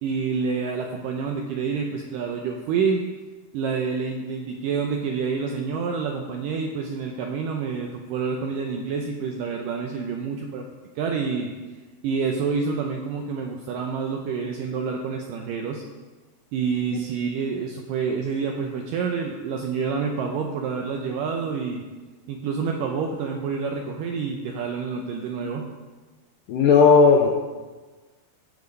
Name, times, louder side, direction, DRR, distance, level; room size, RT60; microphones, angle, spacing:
voice 1, 0.0-3.0 3.5-10.7 11.0-11.5 12.0-15.8 16.5-21.8 22.3-25.7, right 5 dB, 80° right, 2 dB, 1.9 m, -28 dB
voice 2, 26.5-27.3, left 5 dB, 80° left, 1 dB, 2.0 m, -15 dB
14.5 x 4.9 x 5.3 m, 1.3 s
omnidirectional pair, 4.6 m